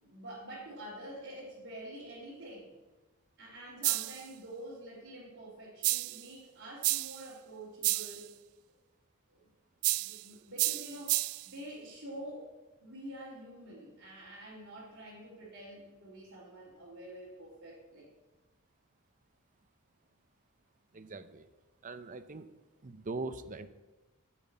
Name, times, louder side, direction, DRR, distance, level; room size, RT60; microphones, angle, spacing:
voice 1, 0.0-2.7 3.4-8.3 9.3-9.4 10.0-12.5 12.8-18.1, right 1 dB, 55° right, -8 dB, 3.5 m, -47 dB
sound 1, 3.8-4.3 5.8-6.3 6.8-7.3 7.8-8.2 9.8-10.2 10.6-11.5, right 20 dB, 70° right, 0.3 m, -31 dB
voice 2, 20.9-21.5 21.8-22.5 22.8-23.7, right 3 dB, 35° right, 11 dB, 0.6 m, -41 dB
9.8 x 7.3 x 8.8 m, 1.2 s
head